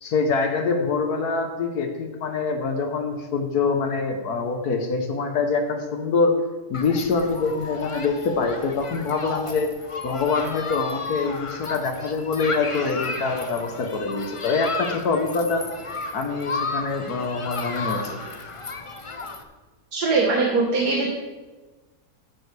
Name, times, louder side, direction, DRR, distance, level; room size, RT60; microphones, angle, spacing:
voice 1, 0.0-6.4 6.7-9.7 10.0-15.7 16.1-18.2, left 4 dB, 75° left, 5 dB, 1.6 m, -25 dB
Human group actions, 6.7-19.4, left 3 dB, 40° left, 0.4 m, -33 dB
voice 2, 19.9-21.1, right 3 dB, 80° right, -1 dB, 2.0 m, -21 dB
13.5 x 9.7 x 3.3 m, 1.2 s
omnidirectional pair, 1.7 m